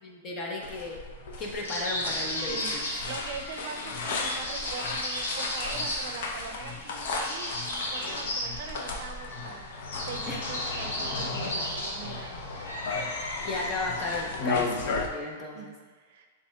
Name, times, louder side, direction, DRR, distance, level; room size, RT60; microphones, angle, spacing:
voice 1, 0.0-1.0 1.4-3.0 10.3-10.4 13.4-15.7, left 2 dB, 30° left, -1 dB, 1.0 m, -35 dB
sound 1, 0.6-15.1, left 3 dB, 65° left, 0.7 m, -35 dB
sound 2, 1.6-14.2, left 1 dB, 80° left, 1.1 m, -35 dB
sound 3, 3.0-14.6, left 3 dB, 5° right, 0.8 m, -49 dB
voice 2, 3.1-9.7 10.0-12.8 15.4-16.3, right 5 dB, 65° right, 5 dB, 0.5 m, -42 dB
6.9 x 3.2 x 2.3 m, 1.4 s
hypercardioid pair, 125°, 0 cm